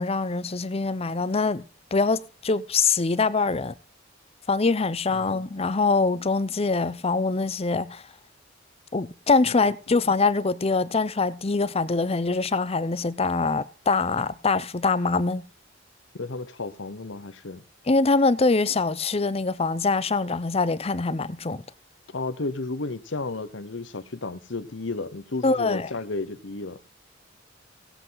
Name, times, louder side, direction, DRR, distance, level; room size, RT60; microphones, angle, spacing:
voice 1, 0.0-1.6 1.9-3.7 4.5-8.0 8.9-15.5 17.9-21.6 25.4-25.9, left 3 dB, 30° left, 0.6 m, -24 dB
voice 2, 16.1-17.6 22.1-26.9, left 3 dB, 70° left, 1.0 m, -33 dB
17.0 x 8.2 x 4.0 m
head